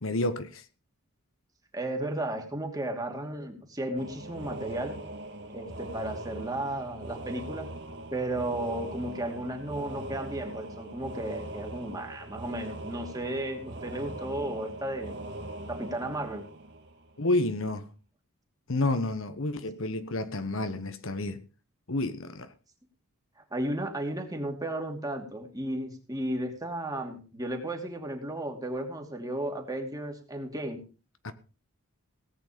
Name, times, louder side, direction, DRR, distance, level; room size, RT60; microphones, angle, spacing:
voice 1, 0.0-0.6 17.2-17.9 18.7-21.4 21.9-22.5 31.2-31.3, left 2 dB, 60° left, 1.2 m, -30 dB
voice 2, 1.7-5.0 5.5-7.7 8.1-15.2 15.7-16.4 23.5-30.8, right 1 dB, 15° right, 2.6 m, -34 dB
sound 1, 4.0-17.4, right 1 dB, 55° right, 2.0 m, -41 dB
18.0 x 9.0 x 5.2 m
head